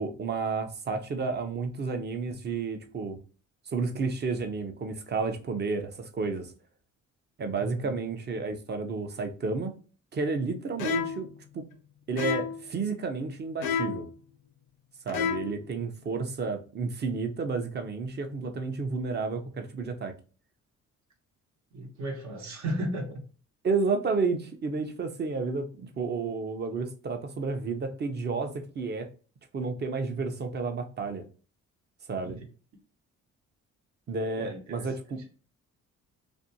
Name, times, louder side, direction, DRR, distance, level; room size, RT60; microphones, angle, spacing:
voice 1, 0.0-3.2 3.7-6.5 7.4-9.7 10.1-11.3 11.5-11.7 12.1-14.1 15.0-20.1 23.6-29.1 29.5-31.2 32.1-32.4 34.1-35.0, right 4 dB, 35° right, 0.5 m, -31 dB
voice 2, 7.6-8.0 21.7-23.2 32.2-32.4 34.4-34.9, right 1 dB, 65° right, 0.9 m, -35 dB
sound 1, 10.8-11.3 12.2-12.6 13.6-14.1 15.1-15.6, left 7 dB, 85° left, 0.5 m, -30 dB
2.5 x 2.1 x 2.7 m
cardioid pair, 90°, 30 cm